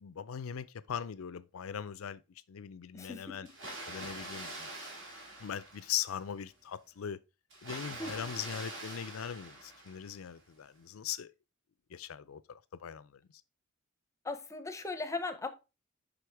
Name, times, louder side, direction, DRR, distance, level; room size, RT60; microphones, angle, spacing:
voice 1, 0.0-2.2 2.5-3.5 3.9-4.7 5.4-7.2 7.6-11.3 11.9-13.1, left 8 dB, 85° left, 0.5 m, -40 dB
voice 2, 2.9-3.4 8.0-8.1 14.2-15.5, left 3 dB, 15° left, 0.6 m, -38 dB
Water, 3.5-6.3 7.5-10.3, right 2 dB, 65° right, 2.3 m, -45 dB
6.2 x 5.1 x 3.3 m
head